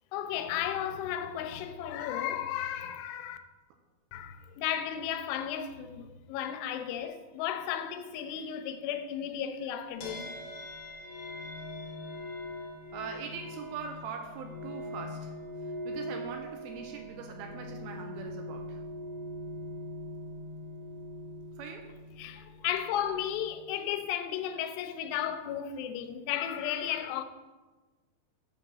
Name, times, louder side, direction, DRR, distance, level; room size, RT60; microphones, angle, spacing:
voice 1, 0.1-3.4 4.1-10.3 22.2-27.2, left 10 dB, 85° left, 2.6 m, -34 dB
sound 1, 10.0-23.5, left 1 dB, 60° left, 2.1 m, -42 dB
voice 2, 12.9-15.3 15.9-18.8 21.6-21.9, right 6 dB, 80° right, 2.3 m, -41 dB
7.7 x 3.8 x 6.2 m
omnidirectional pair, 4.7 m